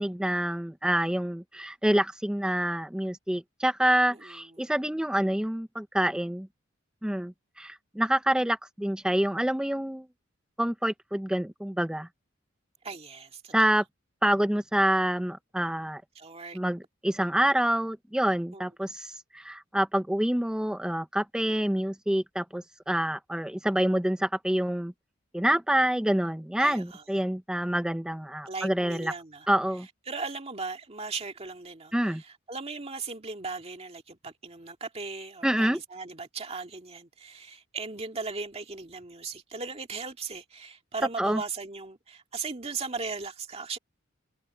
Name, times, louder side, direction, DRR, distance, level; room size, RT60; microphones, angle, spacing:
voice 1, 0.0-6.5 7.0-10.1 10.6-12.1 13.5-13.8 14.2-16.0 16.5-24.9 25.3-29.1 29.5-29.9 31.9-32.2 35.4-35.8 41.2-41.4, right 1 dB, 5° right, 0.4 m, -27 dB
voice 2, 4.2-4.7 12.8-13.6 16.2-16.6 18.5-18.6 26.6-27.0 28.5-29.5 30.1-43.8, right 4 dB, 30° right, 2.0 m, -38 dB
head